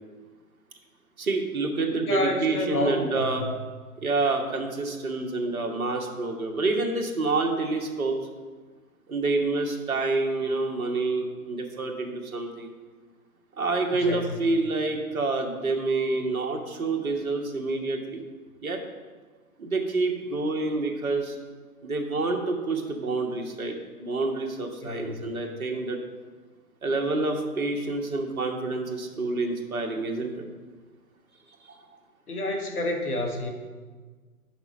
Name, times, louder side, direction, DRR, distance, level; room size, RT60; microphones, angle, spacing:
voice 1, 1.2-3.4 4.0-8.2 9.1-12.7 13.6-18.2 18.6-18.8 19.6-21.3 21.8-26.0 26.8-30.4 31.7-31.8, right 3 dB, 65° right, 2 dB, 1.3 m, -28 dB
voice 2, 2.1-3.5 13.9-14.4 24.8-25.3 32.3-33.5, left 1 dB, 75° left, 3 dB, 1.5 m, -29 dB
5.9 x 5.2 x 5.8 m, 1.4 s
figure-of-eight pair, 135°, 45 cm